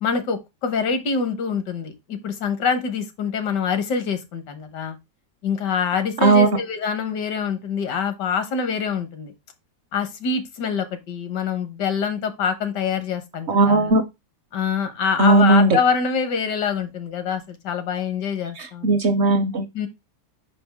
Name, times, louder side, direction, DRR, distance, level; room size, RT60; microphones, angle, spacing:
voice 1, 0.0-5.0 5.4-9.3 9.9-13.9 14.5-18.9 19.7-19.9, left 6 dB, 80° left, 1.7 m, -25 dB
voice 2, 13.5-14.0 15.2-15.8 18.6-19.7, right 3 dB, 55° right, 0.8 m, -17 dB
5.5 x 5.2 x 3.4 m
omnidirectional pair, 1.8 m